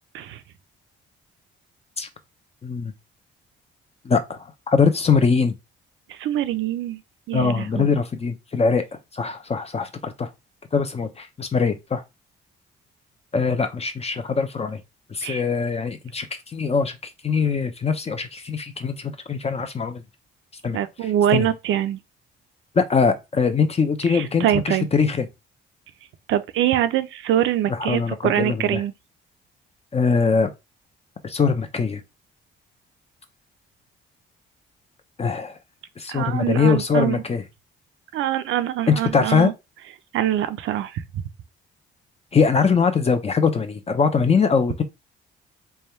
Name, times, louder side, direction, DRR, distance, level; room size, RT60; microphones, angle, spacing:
voice 1, 2.6-2.9 4.0-5.5 7.3-8.8 9.1-10.3 10.7-12.0 13.3-14.8 15.1-20.0 20.6-20.8 21.3-21.5 22.8-25.2 27.7-28.8 29.9-30.5 31.2-32.0 35.2-35.6 36.0-37.4 38.9-39.5 42.3-44.8, left 5 dB, 30° left, 0.6 m, -22 dB
voice 2, 6.1-7.0 7.3-7.9 15.2-15.4 20.7-22.0 24.1-24.9 26.3-28.9 36.1-37.2 38.1-39.5 40.1-41.2, right 11 dB, 80° right, 0.6 m, -24 dB
3.4 x 2.2 x 4.3 m
cardioid pair, 90°, 20 cm